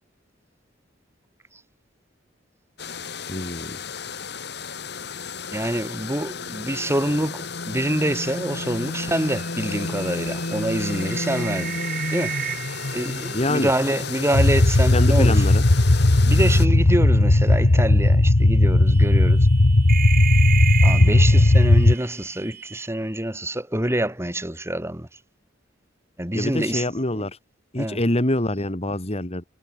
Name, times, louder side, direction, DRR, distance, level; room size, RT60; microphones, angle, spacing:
sound 1, 2.8-16.7, left 3 dB, 60° left, 2.6 m, -32 dB
voice 1, 3.3-3.8 13.3-13.7 14.9-15.7 26.3-27.4 27.7-29.4, left 1 dB, 35° left, 2.9 m, -25 dB
voice 2, 5.5-11.8 12.1-12.5 12.9-15.4 16.3-19.5 20.8-25.1 26.2-26.9 27.1-27.3 27.8-28.0, right 1 dB, 15° right, 3.8 m, -26 dB
sound 2, 9.0-15.3 15.7-16.1 17.2-17.4 17.9-18.0 18.9-22.9, right 10 dB, 50° right, 6.7 m, -33 dB
sound 3, 14.3-21.9, left 2 dB, 90° left, 1.4 m, -16 dB
head